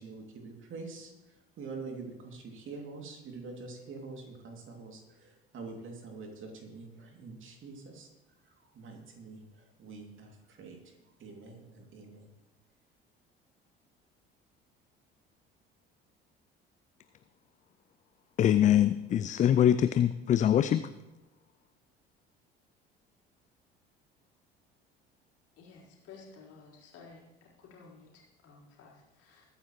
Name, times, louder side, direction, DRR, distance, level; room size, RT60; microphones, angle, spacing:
voice 1, 0.0-8.1 8.4-12.3, right 4 dB, 40° right, 2 dB, 2.7 m, -46 dB
voice 2, 18.4-20.8, left 10 dB, 25° left, 12 dB, 0.4 m, -23 dB
voice 3, 25.6-29.5, left 4 dB, 50° left, -4 dB, 4.2 m, -54 dB
21.0 x 9.6 x 3.1 m, 1.0 s
figure-of-eight pair, 60°, 30 cm